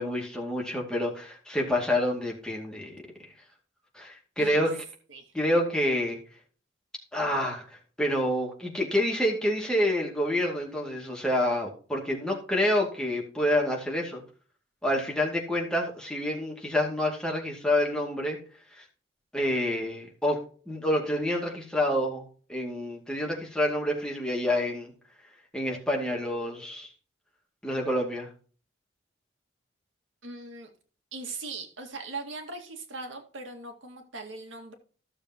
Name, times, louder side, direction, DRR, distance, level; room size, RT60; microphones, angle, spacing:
voice 1, 0.0-3.3 3.9-4.8 5.3-6.2 7.1-14.2 14.8-18.4 18.7-18.8 19.3-24.9 25.5-26.9 27.6-28.3, left 1 dB, 5° left, -1 dB, 2.3 m, -28 dB
voice 2, 4.4-4.7 5.1-5.3 30.2-30.7 31.1-34.7, right 3 dB, 85° right, 4 dB, 2.0 m, -40 dB
14.5 x 7.0 x 2.9 m, 0.40 s
head